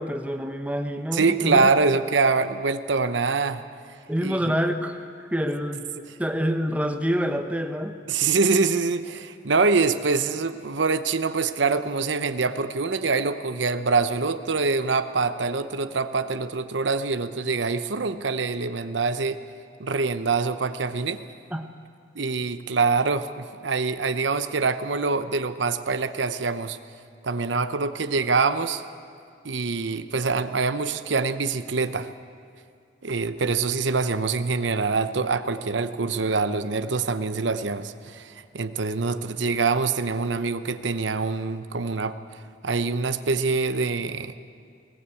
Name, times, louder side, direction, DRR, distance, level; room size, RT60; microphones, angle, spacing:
voice 1, 0.0-1.7 4.1-5.8 6.2-8.0 21.5-21.7, equal, 10° right, 6 dB, 1.1 m, -27 dB
voice 2, 1.1-3.6 4.2-4.5 6.1-6.2 8.1-19.4 19.8-21.2 22.2-26.8 27.2-28.8 29.4-32.1 33.0-42.2 42.6-44.3, right 4 dB, 80° right, 11 dB, 0.8 m, -25 dB
20.0 x 18.5 x 8.5 m, 2.3 s
head